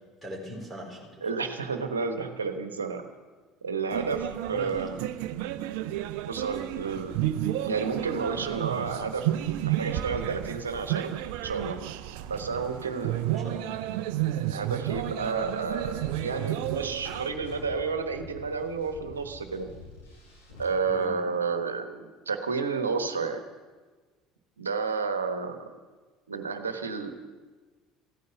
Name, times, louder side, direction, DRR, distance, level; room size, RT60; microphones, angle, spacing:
voice 1, 0.2-1.3 4.5-4.7 13.2-13.8 20.9-21.1, equal, ahead, -2 dB, 4.8 m, -41 dB
voice 2, 1.2-3.0 3.6-5.0 6.3-7.2 7.6-9.3 9.6-11.2 11.4-11.8 12.3-13.2 14.5-15.9 16.2-19.7 20.6-23.4 24.6-25.6 26.3-27.1, right 5 dB, 85° right, 7 dB, 1.2 m, -31 dB
sound 1, 3.9-17.3, right 13 dB, 65° right, 0.6 m, -32 dB
sound 2, 15.0-20.7, left 2 dB, 85° left, 5.5 m, -47 dB
15.5 x 9.5 x 7.8 m, 1.3 s
figure-of-eight pair, 65°, 0 cm